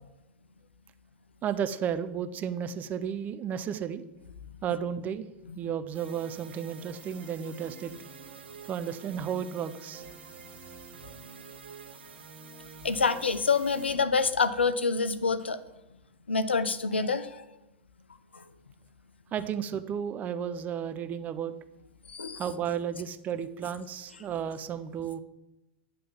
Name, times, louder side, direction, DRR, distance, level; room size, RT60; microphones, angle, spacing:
voice 1, 1.4-4.0 4.6-5.3 5.6-7.9 8.7-10.1 10.5-10.6 19.3-21.5 22.4-25.2, right 8 dB, 30° right, 10 dB, 0.5 m, -33 dB
sound 1, 5.9-13.9, right 5 dB, 70° right, 1.1 m, -48 dB
voice 2, 12.8-15.6 16.3-17.4 22.1-22.4, left 4 dB, 85° left, 13 dB, 0.5 m, -26 dB
8.1 x 3.4 x 5.8 m, 0.94 s
figure-of-eight pair, 95°, 6 cm